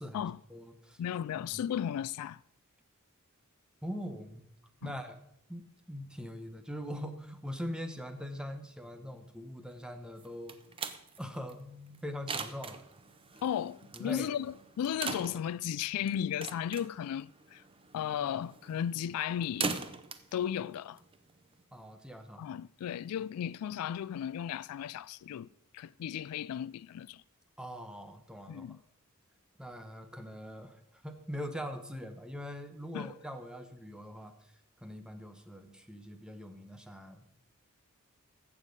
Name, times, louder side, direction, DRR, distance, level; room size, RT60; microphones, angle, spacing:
voice 1, 0.0-1.0 1.5-1.6 3.8-4.5 4.8-5.2 5.5-10.6 11.2-12.8 13.9-14.3 21.7-22.5 27.6-28.8 29.6-34.3 34.8-37.3, equal, 5° right, 0.9 m, -42 dB
voice 2, 1.0-2.4 4.8-4.9 13.4-17.6 17.9-19.8 20.3-21.0 22.4-25.5 25.7-27.2 28.5-28.8 32.9-33.1, left 9 dB, 75° left, 0.3 m, -35 dB
sound 1, 10.2-21.6, right 5 dB, 25° right, 0.6 m, -42 dB
14.5 x 7.2 x 5.2 m
head